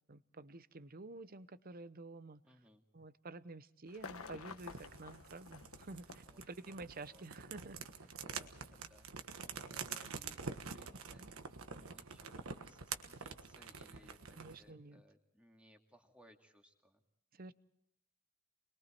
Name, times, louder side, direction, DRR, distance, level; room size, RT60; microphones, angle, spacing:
voice 1, 0.1-2.4 2.9-8.1 11.2-11.3 14.4-15.0 17.3-17.5, right 2 dB, 45° right, 15 dB, 0.8 m, -50 dB
voice 2, 2.4-2.8 6.0-6.8 7.0-7.3 8.2-17.0, equal, 5° right, 2 dB, 2.4 m, -66 dB
sound 1, 3.9-7.0 8.1-8.2, left 4 dB, 80° left, 1.3 m, -51 dB
sound 2, 4.6-14.6, right 5 dB, 80° right, 1.4 m, -47 dB
28.5 x 22.0 x 4.5 m, 0.77 s
head